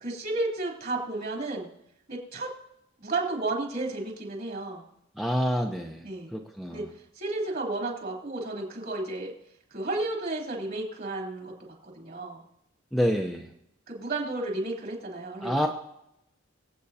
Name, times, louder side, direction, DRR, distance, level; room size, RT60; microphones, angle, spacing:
voice 1, 0.0-1.7 2.1-2.5 3.0-4.8 6.0-6.3 6.7-6.8 7.1-9.3 9.7-11.5 11.8-12.4 13.9-15.7, right 2 dB, 50° right, -1 dB, 3.3 m, -32 dB
voice 2, 5.2-6.0 6.3-6.9 12.9-13.5 15.4-15.7, equal, ahead, 1 dB, 0.7 m, -27 dB
25.0 x 8.4 x 2.8 m, 0.80 s
head